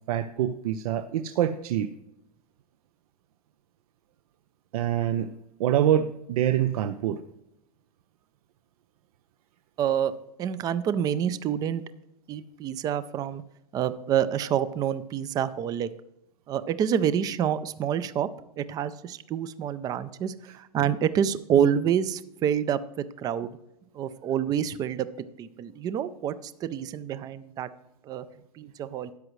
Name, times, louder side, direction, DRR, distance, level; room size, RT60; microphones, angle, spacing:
voice 1, 0.1-1.9 4.7-5.3 5.6-7.2, right 11 dB, 65° right, 10 dB, 0.6 m, -25 dB
voice 2, 9.8-11.8 12.3-13.4 13.7-15.9 16.5-18.3 18.6-23.6 23.9-27.7 28.0-28.3 28.6-29.1, right 9 dB, 20° right, 15 dB, 0.4 m, -27 dB
13.0 x 9.7 x 3.1 m, 0.84 s
supercardioid pair, 145°, 20 cm